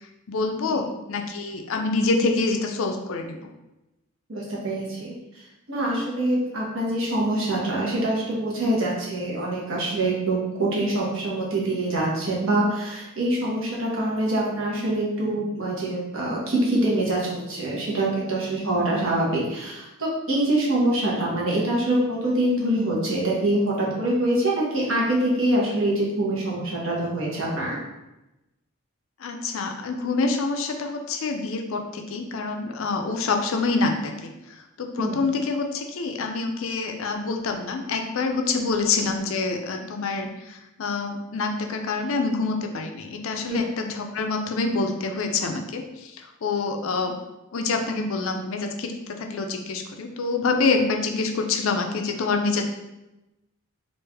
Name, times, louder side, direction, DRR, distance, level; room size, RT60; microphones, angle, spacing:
voice 1, 0.3-3.4 29.2-47.1 47.5-52.6, left 3 dB, 65° left, 4 dB, 0.4 m, -26 dB
voice 2, 4.3-5.1 5.7-27.8 35.0-35.2 43.5-43.6, right 1 dB, 60° right, -4 dB, 1.0 m, -25 dB
3.2 x 2.5 x 3.4 m, 0.97 s
head